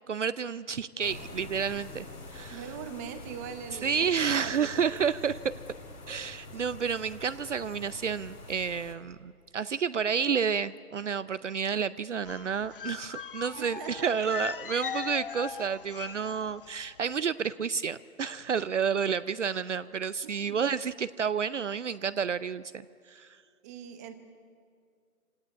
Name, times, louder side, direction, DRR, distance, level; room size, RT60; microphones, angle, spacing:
voice 1, 0.0-2.1 2.3-2.7 3.7-5.4 6.1-23.4, right 6 dB, 50° right, 16 dB, 0.6 m, -30 dB
sound 1, 1.0-8.9, left 2 dB, 85° left, 3.4 m, -46 dB
voice 2, 2.5-4.1 4.4-4.7 13.6-14.1 20.2-20.6 23.6-24.2, right 8 dB, 10° right, 9 dB, 0.8 m, -41 dB
sound 2, 12.3-16.7 17.0-17.2, left 7 dB, 35° left, 0.6 m, -39 dB
24.5 x 17.5 x 9.9 m, 2.2 s
figure-of-eight pair, 140°, 46 cm